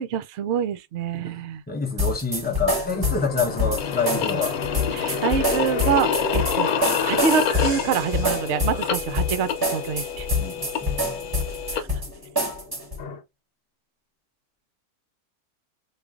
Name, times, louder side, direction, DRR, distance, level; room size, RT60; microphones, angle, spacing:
voice 1, 0.0-1.6 4.9-6.7 7.0-10.3 11.7-11.9, right 8 dB, 65° right, 0.7 m, -26 dB
voice 2, 1.7-4.5 8.7-8.9 10.4-11.3, left 5 dB, 15° left, 0.4 m, -27 dB
sound 1, 2.0-13.0, left 2 dB, 20° right, 0.8 m, -26 dB
sound 2, 2.5-13.2, left 5 dB, 50° left, 1.0 m, -32 dB
sound 3, 3.8-11.8, left 8 dB, 70° left, 1.2 m, -29 dB
4.7 x 2.5 x 2.4 m
omnidirectional pair, 1.6 m